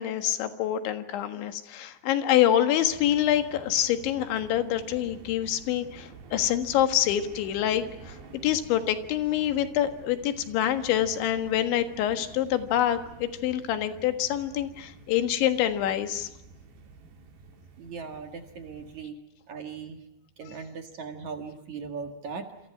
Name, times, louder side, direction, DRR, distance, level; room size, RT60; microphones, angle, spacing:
voice 1, 0.0-8.2 8.4-16.3, left 11 dB, 85° left, 9 dB, 4.0 m, -26 dB
sound 1, 2.8-19.0, right 4 dB, 70° right, 5.2 m, -49 dB
voice 2, 17.8-19.2 19.5-20.0 20.4-22.7, right 5 dB, 50° right, 6 dB, 2.5 m, -39 dB
28.0 x 27.0 x 5.9 m, 0.90 s
omnidirectional pair, 5.1 m